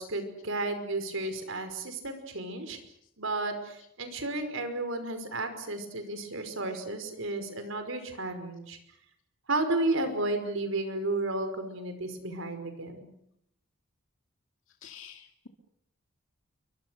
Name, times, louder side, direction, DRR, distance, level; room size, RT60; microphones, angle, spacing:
voice 1, 0.0-2.8 3.2-8.8 9.5-13.1, right 2 dB, 65° right, 8 dB, 5.5 m, -33 dB
voice 2, 14.8-15.5, left 8 dB, 65° left, 4 dB, 2.2 m, -48 dB
29.0 x 24.0 x 6.6 m, 0.75 s
head